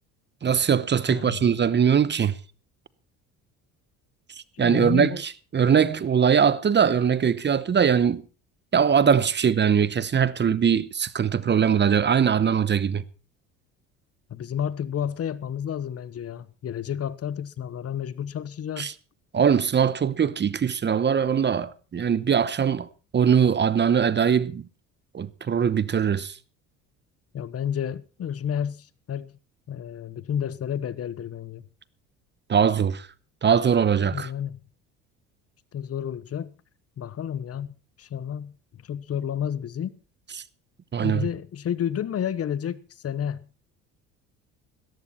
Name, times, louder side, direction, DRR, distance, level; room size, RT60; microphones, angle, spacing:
voice 1, 0.4-2.3 4.6-8.2 8.7-13.0 18.8-18.9 19.3-22.9 23.1-24.6 25.1-26.3 32.5-33.1 33.4-34.3 40.9-41.2, right 7 dB, 30° right, 0.9 m, -21 dB
voice 2, 1.1-1.4 4.5-5.2 14.3-18.9 27.3-29.3 29.7-31.6 34.1-34.6 35.7-36.5 37.0-38.5 38.8-39.9 41.0-43.5, left 9 dB, 45° left, 1.1 m, -31 dB
16.0 x 14.5 x 4.3 m
supercardioid pair, 85°, 35 cm